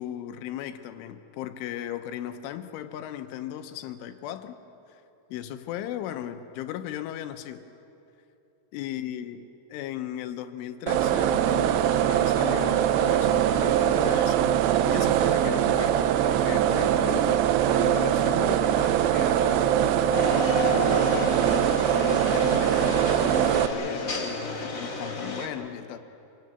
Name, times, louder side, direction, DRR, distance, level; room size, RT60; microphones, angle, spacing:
voice 1, 0.0-4.6 4.9-5.0 5.3-7.6 8.7-9.4 9.7-14.5 14.9-26.0, left 11 dB, 85° left, 8 dB, 3.4 m, -36 dB
sound 1, 10.9-23.7, right 10 dB, 85° right, 3.2 m, -22 dB
sound 2, 20.1-25.5, left 3 dB, 65° left, 0.8 m, -32 dB
27.0 x 17.0 x 9.3 m, 2.9 s
omnidirectional pair, 5.6 m